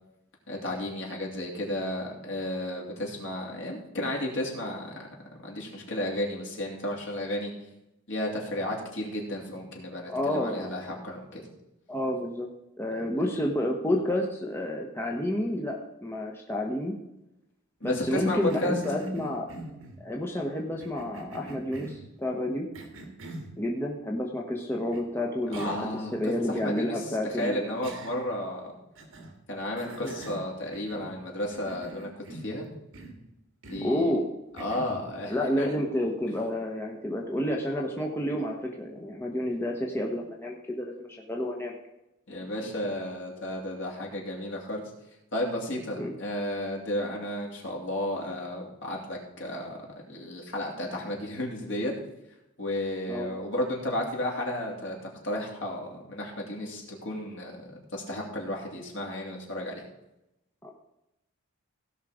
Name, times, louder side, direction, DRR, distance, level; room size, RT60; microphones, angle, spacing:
voice 1, 0.5-5.0 5.4-7.5 8.1-11.4 12.9-13.0 17.8-19.0 25.5-28.7 29.5-32.7 33.7-34.1 34.5-35.7 40.1-40.2 42.3-44.8 45.3-49.8 50.1-51.9 52.6-55.0 55.2-59.8, left 1 dB, 60° left, -1 dB, 2.8 m, -33 dB
voice 2, 10.1-10.7 11.9-12.5 12.8-16.9 17.8-19.5 20.0-22.7 23.6-25.7 26.1-27.8 30.0-30.1 33.8-34.2 35.3-41.7 46.0-46.1 53.1-53.3 60.6-60.7, left 1 dB, 10° left, 0 dB, 1.0 m, -30 dB
Cough, 17.8-20.0 20.8-22.1 22.7-23.5 24.9-25.0 25.5-25.9 26.3-26.4 27.8-28.4 28.9-29.3 29.8-31.2 31.5-32.6 32.9-33.2 33.6-33.9 34.6-35.0, right 2 dB, 65° right, 2.1 m, -42 dB
16.5 x 5.6 x 5.0 m, 0.89 s
head